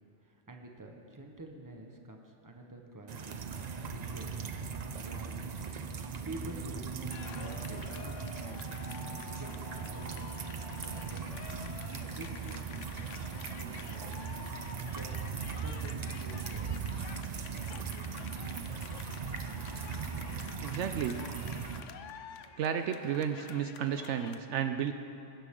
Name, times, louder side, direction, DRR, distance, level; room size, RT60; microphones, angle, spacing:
voice 1, 0.2-4.3 5.0-5.5 6.2-8.6 9.0-10.3 10.7-11.4 11.9-13.1 13.5-14.3 14.9-15.1 15.5-17.3, right 2 dB, 15° right, 2 dB, 1.1 m, -48 dB
sound 1, 3.1-21.8, right 6 dB, 45° right, 0.6 m, -39 dB
sound 2, 7.1-24.4, left 7 dB, 80° left, 1.0 m, -49 dB
voice 2, 20.6-21.3 22.6-24.9, right 8 dB, 75° right, 8 dB, 0.9 m, -32 dB
21.0 x 11.0 x 3.8 m, 2.7 s
omnidirectional pair, 1.3 m